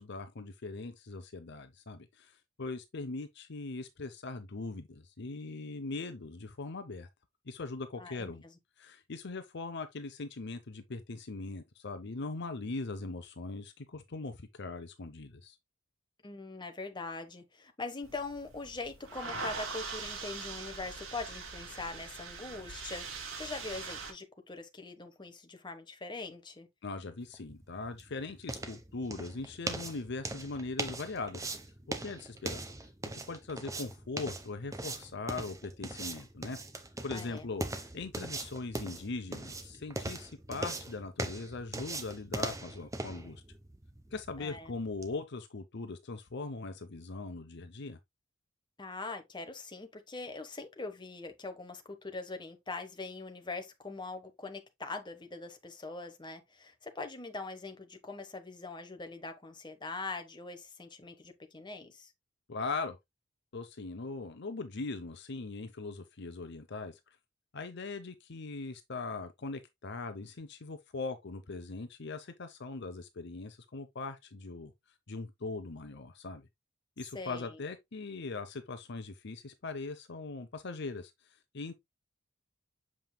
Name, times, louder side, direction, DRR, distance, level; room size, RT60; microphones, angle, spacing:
voice 1, 0.0-7.1 7.5-8.4 8.8-15.6 26.8-31.5 31.9-32.7 33.3-36.6 37.0-43.4 44.1-48.0 62.5-63.0 63.5-67.0 67.5-74.7 75.1-76.5 77.0-81.1 81.5-81.7, left 3 dB, 55° left, 0.7 m, -40 dB
voice 2, 8.0-8.5 16.2-26.7 37.1-37.5 44.4-44.7 48.8-62.1 77.1-77.6, left 3 dB, 20° left, 1.2 m, -42 dB
sound 1, 18.0-24.1, right 4 dB, 75° right, 2.5 m, -42 dB
sound 2, 27.3-45.1, right 2 dB, 15° right, 1.0 m, -41 dB
7.5 x 5.6 x 2.2 m
head